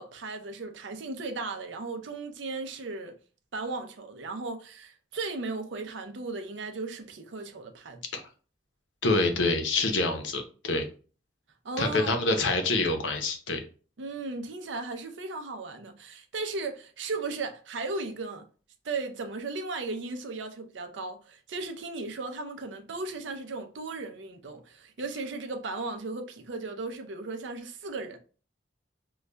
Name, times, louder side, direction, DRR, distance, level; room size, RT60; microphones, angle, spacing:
voice 1, 0.0-3.2 3.5-8.2 11.6-12.1 14.0-18.5 18.8-28.2, right 3 dB, 85° right, 0.6 m, -36 dB
voice 2, 9.0-10.9 11.8-13.6, left 2 dB, 90° left, 0.7 m, -26 dB
5.2 x 2.3 x 2.2 m
head